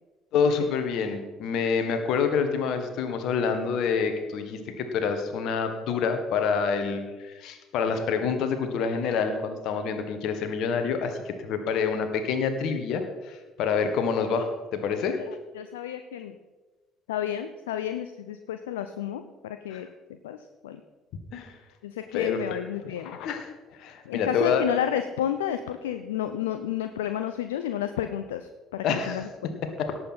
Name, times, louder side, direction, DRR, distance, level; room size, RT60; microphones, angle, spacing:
voice 1, 0.3-15.2 19.7-19.8 21.3-21.5 22.1-22.6 23.0-24.6 28.8-29.2 29.6-30.0, left 6 dB, 55° left, 7 dB, 1.6 m, -27 dB
voice 2, 15.3-16.4 17.1-19.9 20.2-20.4 20.6-20.8 21.8-23.2 24.1-29.7, left 10 dB, 75° left, 9 dB, 0.5 m, -31 dB
17.5 x 7.9 x 4.4 m, 1.2 s
figure-of-eight pair, 55°, 0 cm